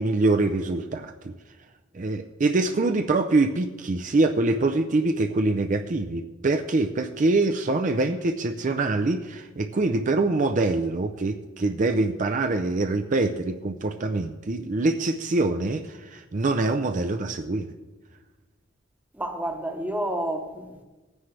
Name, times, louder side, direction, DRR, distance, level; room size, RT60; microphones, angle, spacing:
voice 1, 0.0-1.3 1.9-17.7, right 2 dB, 40° right, 0.5 m, -24 dB
voice 2, 19.1-20.8, right 1 dB, 10° right, 1.0 m, -30 dB
17.5 x 9.6 x 3.3 m
head